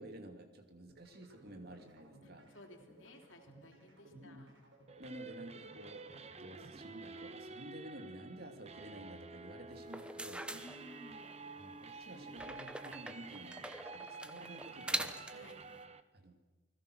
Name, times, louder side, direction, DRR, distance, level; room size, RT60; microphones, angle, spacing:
voice 1, 0.0-2.5 4.1-4.5 5.0-6.1 6.4-10.5 11.5-15.2 16.1-16.4, right 1 dB, 50° right, 5 dB, 2.8 m, -51 dB
sound 1, 0.9-6.9, right 1 dB, 75° right, 6.3 m, -60 dB
voice 2, 2.2-4.6 10.4-11.3 15.3-15.7, left 1 dB, 75° left, 3 dB, 3.4 m, -57 dB
sound 2, 4.9-16.0, right 4 dB, 35° right, 1.0 m, -50 dB
sound 3, 9.8-11.4 12.4-15.5, right 1 dB, 5° right, 0.9 m, -43 dB
29.5 x 20.0 x 6.6 m, 1.2 s
head